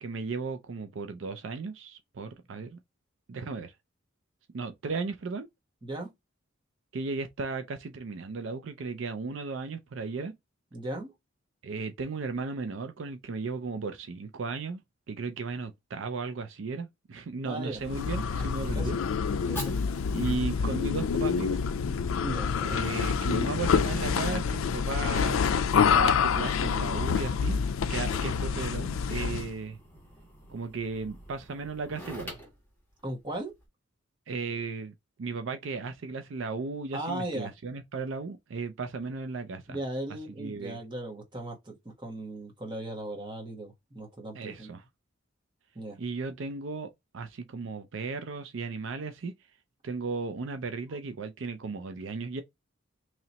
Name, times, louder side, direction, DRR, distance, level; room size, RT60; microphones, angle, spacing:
voice 1, 0.0-2.8 3.3-3.8 4.5-5.5 6.9-10.3 11.6-14.8 15.1-19.0 20.1-21.6 22.7-27.6 27.9-29.8 30.5-32.3 34.3-39.8 40.3-40.8 44.3-44.8 46.0-49.3 49.8-52.4, right 4 dB, 70° right, 0.4 m, -35 dB
voice 2, 5.8-6.1 10.7-11.1 17.4-17.8 18.7-18.9 19.5-19.7 22.2-22.8 33.0-33.5 36.9-37.5 39.7-44.7 45.7-46.0, right 1 dB, 25° right, 1.1 m, -37 dB
Fire, 17.4-33.7, equal, 10° left, 1.4 m, -49 dB
sound 1, 17.8-29.6, left 6 dB, 80° left, 0.4 m, -27 dB
3.1 x 2.8 x 3.9 m
head